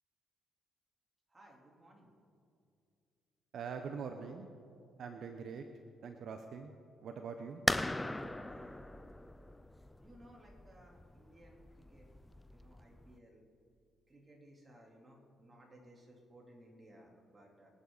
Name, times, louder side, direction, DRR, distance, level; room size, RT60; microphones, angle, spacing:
voice 1, 1.3-2.2 8.4-9.6 10.0-12.0 12.5-13.4 14.1-17.7, right 1 dB, 25° right, -2 dB, 3.6 m, -60 dB
voice 2, 3.5-4.5 5.0-5.6 6.0-6.7 7.0-7.6, right 6 dB, 65° right, 6 dB, 0.9 m, -43 dB
sound 1, 7.7-13.1, left 1 dB, 10° left, 0.5 m, -39 dB
25.0 x 10.0 x 4.1 m, 2.5 s
cardioid pair, 90°, 0 cm